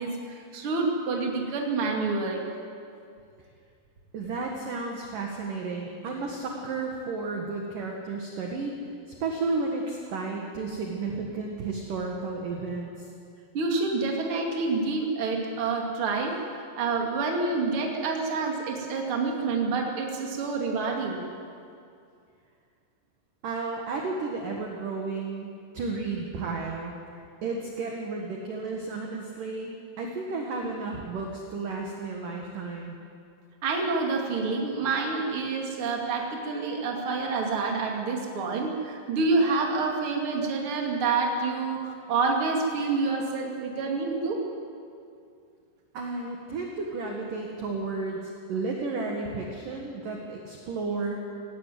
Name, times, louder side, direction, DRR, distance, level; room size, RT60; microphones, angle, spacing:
voice 1, 0.0-2.4 13.5-16.3 16.8-21.2 33.6-44.4, right 4 dB, 40° right, 1 dB, 2.1 m, -28 dB
voice 2, 4.1-13.1 23.4-27.0 27.4-32.9 45.9-48.2 48.5-51.2, right 3 dB, 60° right, 0 dB, 2.4 m, -33 dB
17.5 x 16.5 x 9.3 m, 2.4 s
omnidirectional pair, 5.8 m